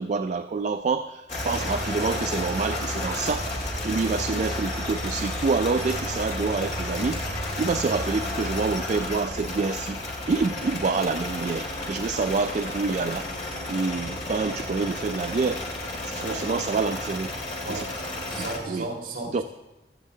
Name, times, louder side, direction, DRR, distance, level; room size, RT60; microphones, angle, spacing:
voice 1, 0.0-3.5 3.8-10.0 10.3-13.3 13.7-15.6 16.0-17.3 17.7-17.8 18.4-18.9 19.3-19.4, right 4 dB, 40° right, 9 dB, 0.3 m, -27 dB
sound 1, 1.3-18.6, left 1 dB, 45° left, 2.3 m, -32 dB
voice 2, 16.1-16.5 17.6-19.4, right 2 dB, 60° right, -1 dB, 3.9 m, -35 dB
16.0 x 13.0 x 2.7 m, 1.1 s
head